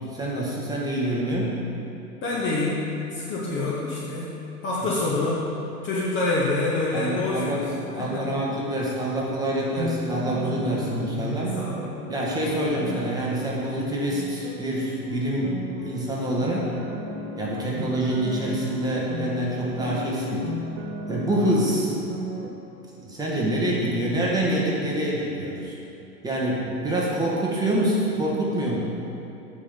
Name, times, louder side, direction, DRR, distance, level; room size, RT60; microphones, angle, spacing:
voice 1, 0.1-1.6 6.9-7.7 7.9-11.5 12.1-16.7 17.4-20.5 21.1-21.9 23.0-25.7 26.2-28.8, right 1 dB, 10° right, -5 dB, 1.3 m, -26 dB
voice 2, 2.2-4.3 4.6-5.4 5.8-7.6 8.0-8.4 10.7-11.8, left 2 dB, 25° left, -5 dB, 1.0 m, -27 dB
sound 1, 9.4-22.5, left 1 dB, 30° right, 0.8 m, -34 dB
7.0 x 5.3 x 5.7 m, 3.0 s
hypercardioid pair, 110°, 49 cm